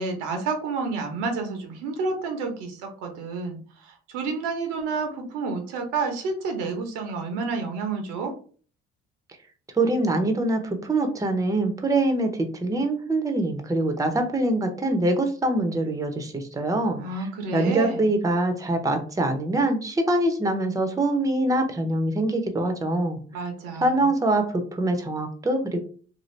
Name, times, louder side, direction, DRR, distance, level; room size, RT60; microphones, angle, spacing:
voice 1, 0.0-8.3 17.0-18.1 23.3-24.1, right 4 dB, 80° right, 4 dB, 0.9 m, -30 dB
voice 2, 9.7-17.0 17.5-23.2 23.8-25.8, right 2 dB, 10° right, 6 dB, 0.6 m, -24 dB
2.7 x 2.5 x 3.1 m, 0.42 s
supercardioid pair, 80°, 29 cm